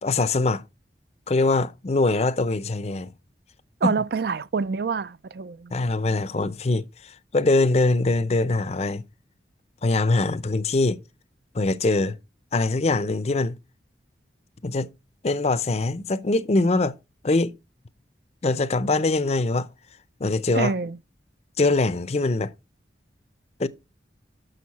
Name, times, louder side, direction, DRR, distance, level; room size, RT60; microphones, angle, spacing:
voice 1, 0.0-0.6 1.3-3.1 3.8-3.9 5.7-9.0 9.8-11.0 11.5-12.2 12.5-13.6 14.6-14.9 15.2-16.9 17.2-17.5 18.4-19.7 20.2-20.7 21.6-22.5 23.6-23.7, left 2 dB, 35° left, 0.5 m, -23 dB
voice 2, 3.8-5.8 20.5-21.0, right 5 dB, 60° right, 0.4 m, -26 dB
6.5 x 6.5 x 4.1 m
head